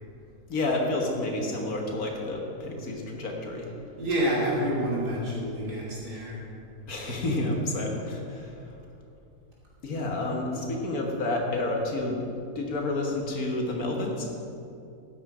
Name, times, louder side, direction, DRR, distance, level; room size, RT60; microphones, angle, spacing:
voice 1, 0.5-3.7 6.9-8.6 9.8-12.2 12.6-14.3, left 2 dB, 65° left, 1 dB, 2.0 m, -29 dB
voice 2, 4.0-6.4, equal, 90° right, -6 dB, 3.5 m, -28 dB
12.5 x 9.1 x 4.9 m, 2.7 s
omnidirectional pair, 1.7 m